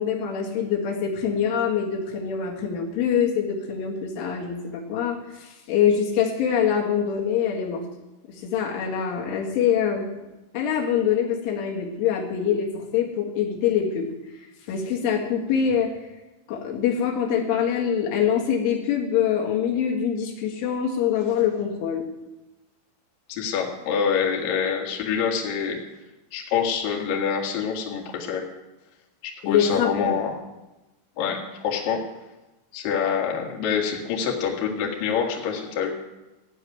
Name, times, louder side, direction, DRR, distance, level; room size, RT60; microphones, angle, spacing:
voice 1, 0.0-7.8 8.3-10.1 10.5-14.1 14.4-15.9 16.5-22.1 29.4-30.3, left 8 dB, 75° left, -1 dB, 4.2 m, -24 dB
voice 2, 23.3-25.8 26.3-28.4 29.2-30.4 31.2-32.0 32.7-35.9, left 7 dB, 55° left, -1 dB, 3.0 m, -26 dB
15.0 x 7.0 x 9.3 m, 1.0 s
omnidirectional pair, 5.7 m